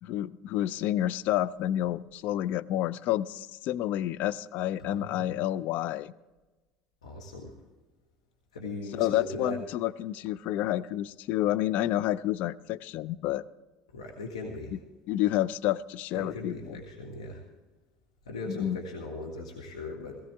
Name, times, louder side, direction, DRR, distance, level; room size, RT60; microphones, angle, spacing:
voice 1, 0.0-6.1 8.9-13.4 15.1-16.8 18.5-18.8, left 13 dB, 60° left, 17 dB, 0.4 m, -29 dB
voice 2, 4.8-5.4 7.0-7.5 8.5-9.6 13.9-14.7 16.1-17.4 18.2-20.2, left 2 dB, 90° left, 0 dB, 1.7 m, -39 dB
17.0 x 15.5 x 3.5 m, 1.2 s
hypercardioid pair, 75°, 3 cm